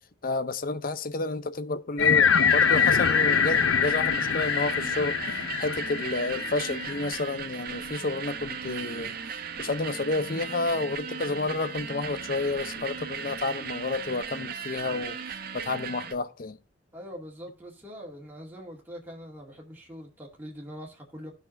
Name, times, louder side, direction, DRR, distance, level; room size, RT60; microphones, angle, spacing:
voice 1, 0.2-5.2 5.6-9.2 9.6-15.2 15.5-16.6, left 3 dB, 45° left, 0.6 m, -30 dB
sound 1, 2.0-7.2, left 7 dB, 90° left, 0.6 m, -24 dB
sound 2, 2.3-16.1, right 7 dB, 50° right, 0.8 m, -37 dB
voice 2, 16.9-21.3, equal, 10° right, 2.2 m, -43 dB
16.5 x 5.9 x 2.6 m
head